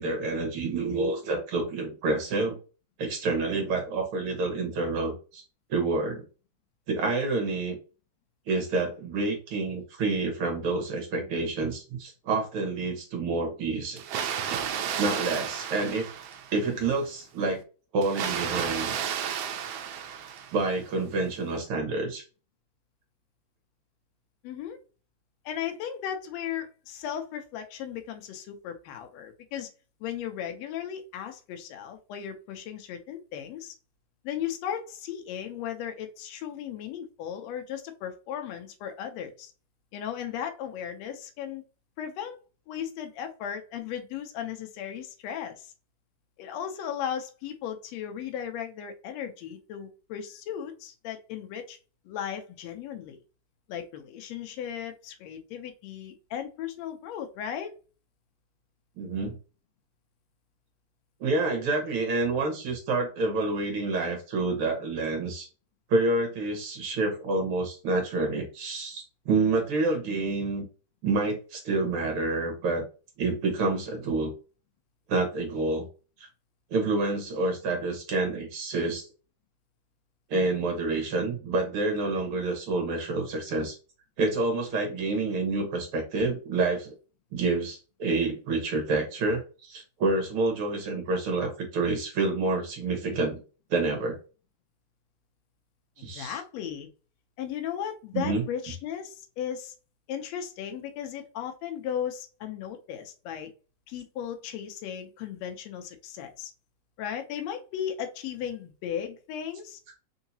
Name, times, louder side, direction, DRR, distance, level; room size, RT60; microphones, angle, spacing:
voice 1, 0.0-2.6 3.0-5.4 5.7-6.2 6.9-7.8 8.5-14.0 15.0-16.1 16.5-17.6 17.9-18.9 20.5-22.2 59.0-59.3 61.2-65.5 65.9-70.6 71.0-72.8 73.2-74.3 75.1-75.9 76.7-79.1 80.3-83.8 84.2-86.9 87.3-93.4 93.7-94.2 96.0-96.4 98.1-98.4, right 3 dB, 60° right, 2 dB, 1.7 m, -28 dB
Water, 14.0-16.8 18.0-20.8, right 8 dB, 85° right, 1.4 m, -33 dB
voice 2, 24.4-24.8 25.4-29.7 30.0-33.7 34.2-39.5 39.9-41.6 42.0-42.4 42.7-45.7 46.4-51.8 52.0-53.2 53.7-57.7 96.1-96.9 97.4-99.7 100.1-103.5 103.9-106.5 107.0-109.8, left 9 dB, 75° left, 5 dB, 1.7 m, -36 dB
4.7 x 2.8 x 2.7 m, 0.34 s
omnidirectional pair, 3.3 m